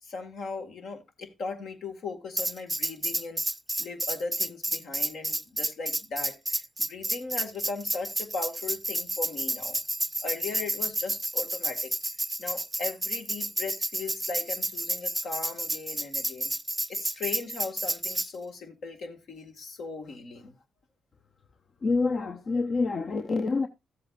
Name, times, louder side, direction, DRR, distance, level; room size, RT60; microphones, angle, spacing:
voice 1, 0.0-3.4 3.8-9.8 10.2-11.9 12.4-16.5 16.9-20.5, left 4 dB, 70° left, 1.9 m, -38 dB
Tambourine, 2.4-18.3, right 1 dB, 5° right, 0.6 m, -30 dB
voice 2, 21.8-23.7, left 3 dB, 50° left, 0.8 m, -27 dB
14.0 x 7.7 x 2.5 m
hypercardioid pair, 50°, 0 cm